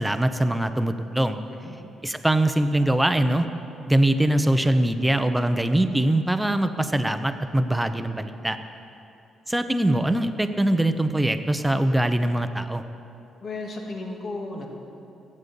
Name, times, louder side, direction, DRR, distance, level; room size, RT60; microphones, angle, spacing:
voice 1, 0.0-1.4 2.0-3.5 3.9-8.6 9.5-12.8, right 1 dB, 5° right, 9 dB, 0.8 m, -22 dB
voice 2, 13.4-14.7, left 2 dB, 50° left, 0 dB, 2.3 m, -34 dB
14.0 x 8.7 x 6.9 m, 2.8 s
cardioid pair, 90°, 0 cm